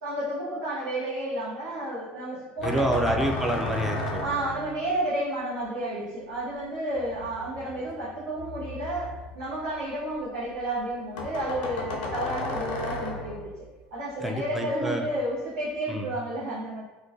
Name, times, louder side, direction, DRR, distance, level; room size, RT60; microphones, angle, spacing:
voice 1, 0.0-2.9 4.2-13.4 13.9-16.8, right 1 dB, 85° right, -10 dB, 0.8 m, -31 dB
sound 1, 2.6-5.0 6.9-10.2 10.5-10.6 10.9-11.0 11.2-13.7, left 2 dB, 85° left, 0.5 m, -35 dB
voice 2, 2.6-4.2 14.2-15.1 15.9-16.1, right 1 dB, 5° right, 2 dB, 0.4 m, -27 dB
2.2 x 2.1 x 2.6 m, 1.1 s
supercardioid pair, 90°, 5 cm